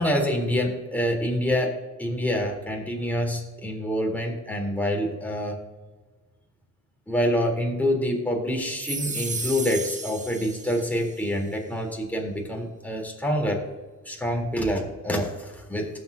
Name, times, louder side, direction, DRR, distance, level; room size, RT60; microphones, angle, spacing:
voice 1, 0.0-5.6 7.1-13.6 14.1-15.9, equal, 5° left, 0 dB, 3.7 m, -26 dB
sound 1, 8.7-11.2, right 3 dB, 25° right, 1.3 m, -34 dB
19.5 x 8.0 x 2.8 m, 1.3 s
cardioid pair, 90°, 30 cm